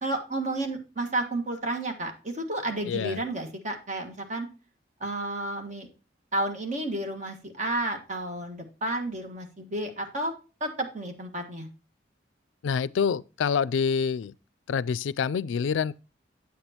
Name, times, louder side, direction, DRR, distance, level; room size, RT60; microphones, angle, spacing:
voice 1, 0.0-4.5 5.0-5.9 6.3-10.3 10.6-11.7, right 2 dB, 40° right, 1.6 m, -31 dB
voice 2, 2.9-3.2 12.6-14.3 14.7-15.9, left 6 dB, 85° left, 0.4 m, -26 dB
8.3 x 7.9 x 2.8 m
head